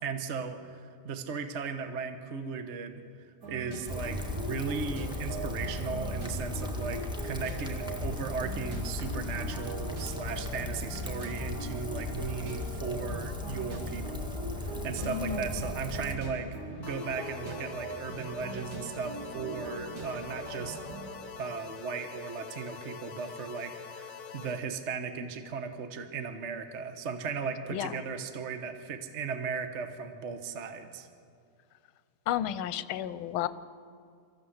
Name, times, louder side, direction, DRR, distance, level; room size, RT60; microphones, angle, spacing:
voice 1, 0.0-16.5 16.8-20.8 21.3-31.1, right 5 dB, 40° right, 8 dB, 1.1 m, -37 dB
sound 1, 3.4-21.1, right 2 dB, 70° right, 3.2 m, -41 dB
Rain, 3.9-16.2, left 2 dB, ahead, 1.4 m, -37 dB
voice 2, 15.0-15.7 27.7-27.9 32.3-33.5, left 11 dB, 75° left, 15 dB, 1.5 m, -32 dB
sound 2, 16.8-24.6, left 7 dB, 55° left, 1.4 m, -45 dB
24.5 x 14.5 x 8.0 m, 2.3 s
omnidirectional pair, 2.3 m